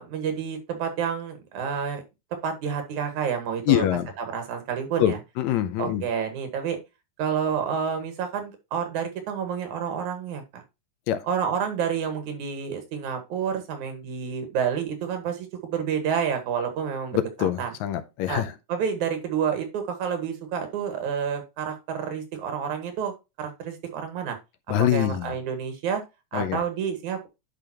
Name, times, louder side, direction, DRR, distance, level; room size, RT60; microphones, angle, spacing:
voice 1, 0.0-2.0 2.4-3.8 4.2-5.2 5.8-6.8 7.2-10.6 11.3-17.7 18.3-18.4 18.7-24.4 24.8-26.0 26.3-27.3, right 7 dB, 80° right, 3.0 m, -29 dB
voice 2, 3.7-4.1 5.0-6.0 11.1-11.2 17.1-18.5 24.7-25.3 26.3-26.6, left 12 dB, 75° left, 2.0 m, -24 dB
10.5 x 4.8 x 2.9 m
omnidirectional pair, 3.4 m